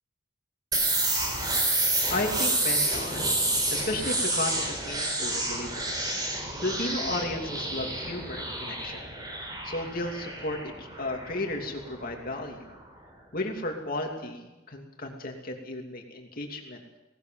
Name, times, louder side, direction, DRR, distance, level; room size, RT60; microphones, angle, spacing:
sound 1, 0.7-12.3, right 2 dB, 20° right, 4.0 m, -29 dB
voice 1, 2.1-3.3 3.7-6.0 6.6-9.0 9.6-12.7 13.3-16.8, left 2 dB, 45° left, 2 dB, 2.8 m, -34 dB
18.5 x 18.5 x 7.7 m, 1.1 s
head